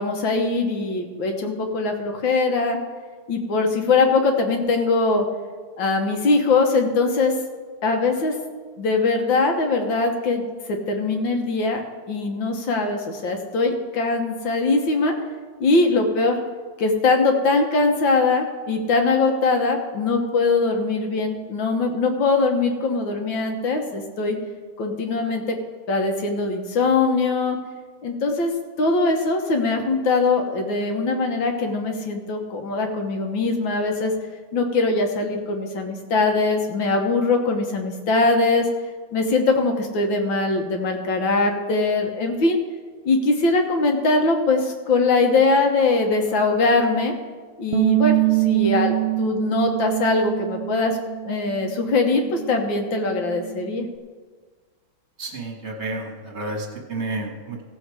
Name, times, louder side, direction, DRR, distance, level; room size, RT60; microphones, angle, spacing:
voice 1, 0.0-2.8 3.3-5.3 5.8-7.4 7.8-8.4 8.8-15.1 15.6-16.4 16.8-24.4 24.8-25.6 25.9-27.6 28.0-28.5 28.8-34.1 34.5-38.7 39.1-42.6 43.1-47.1 47.6-51.0 51.3-53.9, left 3 dB, 65° left, 3 dB, 1.8 m, -21 dB
Bass guitar, 47.7-54.0, right 21 dB, 85° right, 1.5 m, -25 dB
voice 2, 55.2-57.6, right 2 dB, 35° right, 1 dB, 1.7 m, -31 dB
16.0 x 7.1 x 4.9 m, 1.5 s
omnidirectional pair, 2.4 m